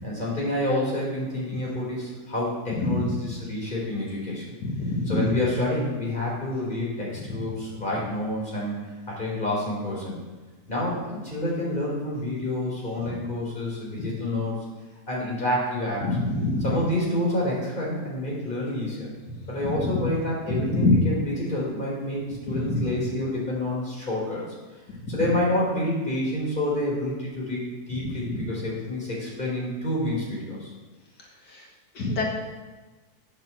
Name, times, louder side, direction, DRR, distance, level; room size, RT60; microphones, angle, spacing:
voice 1, 0.0-4.5 5.1-10.2 10.7-14.6 15.1-16.0 16.6-19.2 19.5-21.2 21.5-22.2 22.5-24.4 25.1-30.7, left 1 dB, 30° left, -5 dB, 4.0 m, -28 dB
voice 2, 2.8-3.1 4.6-5.3 13.1-13.2 14.0-14.1 16.0-16.7 19.3-20.0 20.6-21.0 22.5-23.1 27.9-28.4 31.5-31.7 31.9-32.2, left 2 dB, 90° left, -2 dB, 2.5 m, -26 dB
8.5 x 7.3 x 7.4 m, 1.2 s
omnidirectional pair, 1.7 m